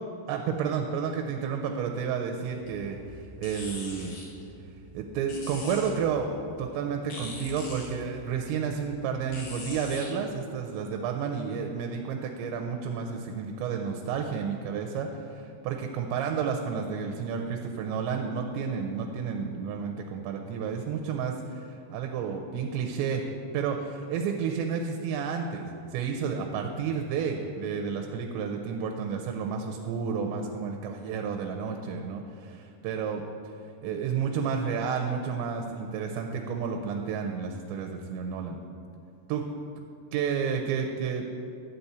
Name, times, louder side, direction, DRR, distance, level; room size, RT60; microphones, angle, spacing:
voice 1, 0.3-4.2 4.9-23.2 23.5-33.5 33.8-38.6 39.3-39.5 40.1-41.2, right 6 dB, 85° right, 3 dB, 2.9 m, -31 dB
sound 1, 2.5-10.1, left 2 dB, 60° left, 2.8 m, -44 dB
11.5 x 4.2 x 8.0 m, 2.6 s
omnidirectional pair, 5.1 m